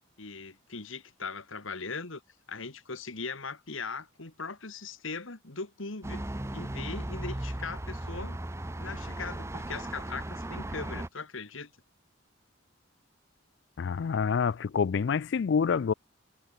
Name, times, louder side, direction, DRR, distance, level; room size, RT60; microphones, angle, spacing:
voice 1, 0.2-2.2 2.5-6.2 6.5-8.4 8.8-11.7, left 4 dB, 70° left, 2.1 m, -39 dB
sound 1, 6.0-11.1, right 1 dB, 15° right, 0.7 m, -36 dB
voice 2, 13.8-15.9, left 6 dB, 55° left, 0.3 m, -27 dB
head